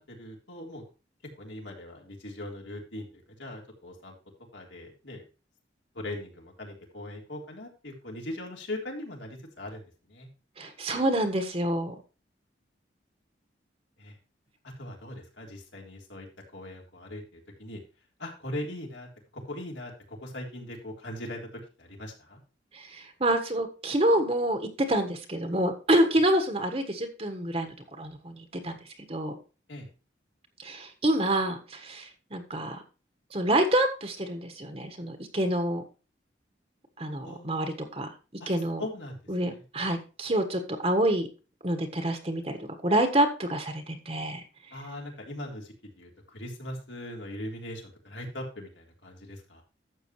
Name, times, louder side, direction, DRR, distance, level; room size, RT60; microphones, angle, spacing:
voice 1, 0.1-0.8 1.4-4.2 4.5-5.2 5.9-10.3 14.0-14.2 14.6-16.3 16.5-17.8 18.2-22.4 29.7-29.9 37.2-37.5 38.4-38.5 38.8-39.2 39.5-39.6 44.7-49.6, left 1 dB, 80° left, 0 dB, 3.7 m, -40 dB
voice 2, 10.6-11.9 22.7-28.8 29.1-29.3 30.6-32.8 33.3-35.8 37.0-38.1 38.5-38.8 39.3-41.3 41.6-42.6 42.8-44.4, right 1 dB, 30° right, 6 dB, 1.4 m, -27 dB
12.0 x 8.0 x 3.1 m, 0.32 s
head